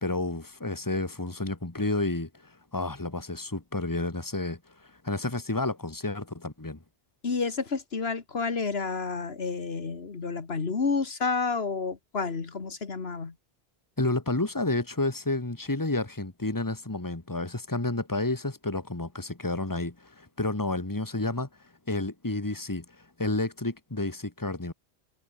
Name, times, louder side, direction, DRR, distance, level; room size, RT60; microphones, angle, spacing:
voice 1, 0.0-6.8 14.0-21.5 21.9-24.7, left 2 dB, 20° left, 2.0 m, -30 dB
voice 2, 7.2-13.3, left 4 dB, 80° left, 2.0 m, -30 dB
omnidirectional pair, 1.0 m